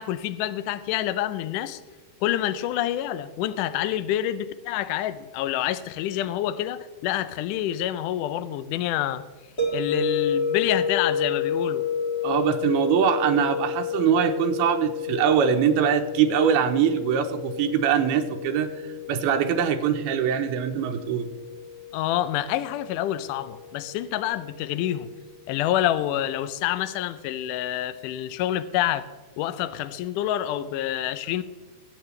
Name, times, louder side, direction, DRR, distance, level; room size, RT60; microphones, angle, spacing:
voice 1, 0.0-1.8 2.2-9.2 9.7-11.9 21.9-25.1 25.5-29.0 29.4-31.4, left 12 dB, 90° left, 13 dB, 1.8 m, -27 dB
sound 1, 9.6-24.5, left 5 dB, 25° left, 1.6 m, -31 dB
voice 2, 12.2-21.3, right 8 dB, 90° right, 6 dB, 2.8 m, -23 dB
22.0 x 9.2 x 3.3 m, 1.3 s
omnidirectional pair, 4.5 m